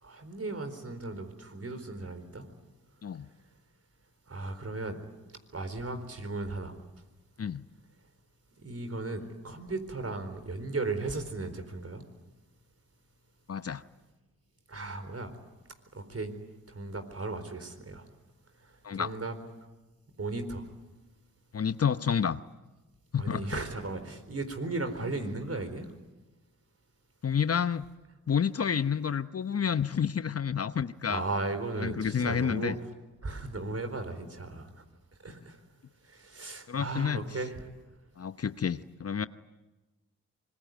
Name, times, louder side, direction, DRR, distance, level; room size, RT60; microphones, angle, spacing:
voice 1, 0.0-2.4 4.3-5.0 5.5-6.7 8.6-12.0 14.7-15.3 15.9-16.3 16.7-18.1 18.9-19.3 20.2-20.6 23.2-25.9 31.1-32.8 33.2-34.7 35.2-35.6 36.0-37.7, right 2 dB, 45° right, 8 dB, 4.2 m, -36 dB
voice 2, 13.5-13.8 18.8-19.1 21.5-22.4 23.1-23.5 27.2-27.9 28.3-31.2 31.8-32.8 36.7-37.2 38.2-39.3, left 7 dB, 45° left, 13 dB, 0.9 m, -29 dB
25.5 x 21.0 x 9.3 m, 1.1 s
supercardioid pair, 40°, 34 cm